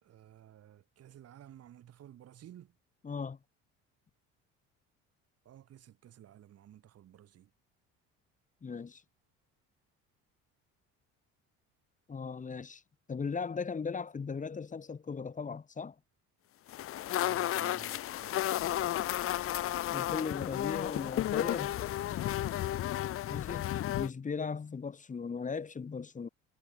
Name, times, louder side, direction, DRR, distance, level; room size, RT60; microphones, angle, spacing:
voice 1, 0.0-2.7 5.4-7.5 16.9-19.2, right 11 dB, 55° right, 2.5 m, -55 dB
voice 2, 3.0-3.4 8.6-9.0 12.1-12.8 13.1-15.9 19.9-21.8 23.3-26.3, left 5 dB, 25° left, 1.7 m, -38 dB
sound 1, 16.7-24.1, left 13 dB, 45° left, 0.6 m, -33 dB
cardioid pair, 110°, 30 cm